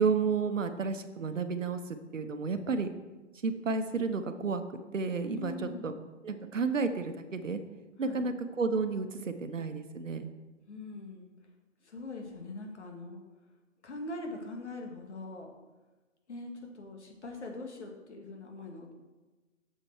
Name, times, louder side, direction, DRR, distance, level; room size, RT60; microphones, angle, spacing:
voice 1, 0.0-1.8 2.1-2.9 3.4-4.6 4.9-5.9 6.2-7.6 8.0-10.3, right 5 dB, 80° right, 9 dB, 1.0 m, -31 dB
voice 2, 5.3-6.0 8.0-8.3 10.7-11.3 11.8-13.2 13.8-15.5 16.3-18.9, left 2 dB, 65° left, 2 dB, 2.1 m, -42 dB
7.6 x 6.9 x 4.6 m, 1.2 s
hypercardioid pair, 155°, 38 cm